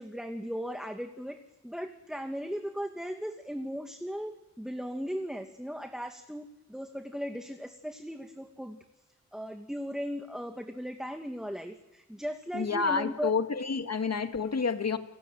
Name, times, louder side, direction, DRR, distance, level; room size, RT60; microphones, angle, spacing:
voice 1, 0.0-8.8 9.3-13.3, equal, ahead, 5 dB, 2.3 m, -37 dB
voice 2, 12.5-15.0, left 5 dB, 60° left, 7 dB, 2.1 m, -29 dB
29.5 x 18.0 x 9.1 m, 1.1 s
wide cardioid pair, 65°, 29 cm